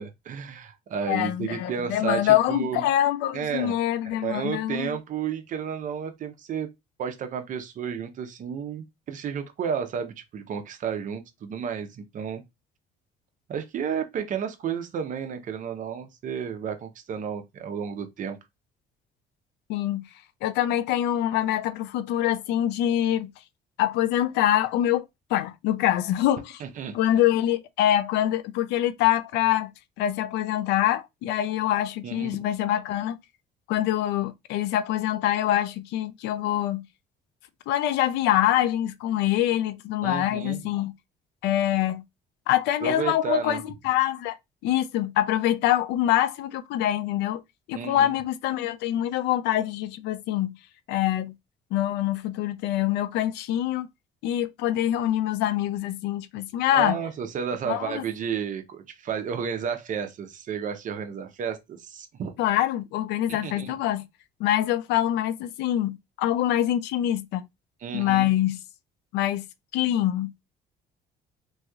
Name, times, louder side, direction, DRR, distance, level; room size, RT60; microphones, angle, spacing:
voice 1, 0.0-2.8 3.3-3.7 4.2-6.7 7.0-12.4 13.5-18.4 26.6-27.0 32.0-32.3 40.0-40.6 42.8-43.6 47.7-48.1 56.7-62.3 63.3-63.8 67.8-68.3, right 7 dB, 50° right, 0.7 m, -32 dB
voice 2, 1.0-5.0 19.7-20.0 20.4-23.3 23.8-25.0 25.3-26.6 26.9-29.7 30.0-33.2 33.7-36.8 37.7-40.9 41.4-42.0 42.5-44.4 44.6-47.4 47.7-50.5 50.9-51.3 51.7-53.9 54.2-57.0 57.7-58.0 62.4-64.1 64.4-67.5 67.9-68.6 69.1-69.5 69.7-70.3, left 12 dB, 85° left, 0.4 m, -25 dB
3.0 x 2.6 x 2.3 m
cardioid pair, 110°, 17 cm